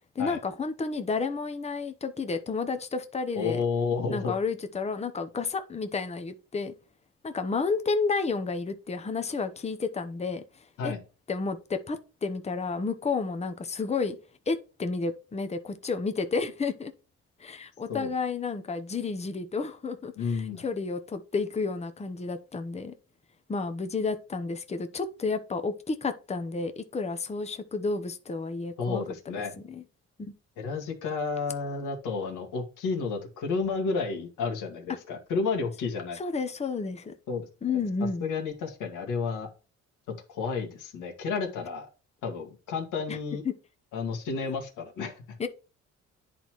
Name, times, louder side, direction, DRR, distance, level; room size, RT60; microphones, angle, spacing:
voice 1, 0.1-3.6 4.1-6.7 7.2-10.4 10.8-10.9 11.3-14.2 14.5-16.9 17.4-22.9 23.5-29.3 29.7-29.8 30.2-30.3 36.1-37.1 37.6-38.2 43.1-43.2 43.4-43.5 45.4-45.5, left 4 dB, 20° left, 0.8 m, -31 dB
voice 2, 3.3-4.4 10.8-11.0 17.9-18.1 20.2-20.6 28.8-29.5 30.6-36.2 37.3-37.5 38.2-39.5 40.3-41.9 42.2-43.4 43.9-45.2, left 4 dB, 85° left, 1.9 m, -31 dB
10.0 x 4.1 x 3.1 m
cardioid pair, 90°, 30 cm